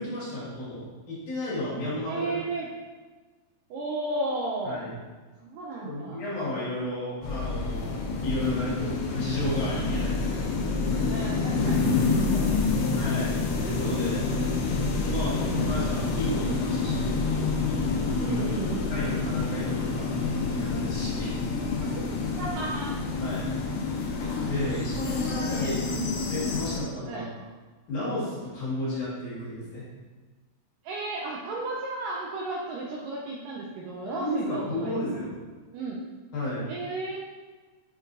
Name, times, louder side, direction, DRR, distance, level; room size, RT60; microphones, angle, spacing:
voice 1, 0.0-2.3 4.6-4.9 5.8-10.6 13.0-14.3 15.0-17.1 18.2-18.4 18.9-20.2 20.5-21.3 23.2-23.5 24.4-25.8 26.3-27.3 27.9-29.8 34.2-35.4 36.3-36.7, left 1 dB, 60° left, -9 dB, 3.0 m, -33 dB
voice 2, 2.1-2.7 3.7-4.8 5.4-6.2 11.1-13.1 15.4-15.9 18.2-18.9 21.8-22.1 22.4-22.9 25.0-26.3 27.1-27.3 30.8-35.2 35.7-36.0 36.7-37.2, right 2 dB, 85° right, -3 dB, 1.9 m, -34 dB
sound 1, 7.2-26.8, left 4 dB, 85° left, 3.0 m, -28 dB
7.8 x 4.6 x 2.6 m, 1.3 s
omnidirectional pair, 4.6 m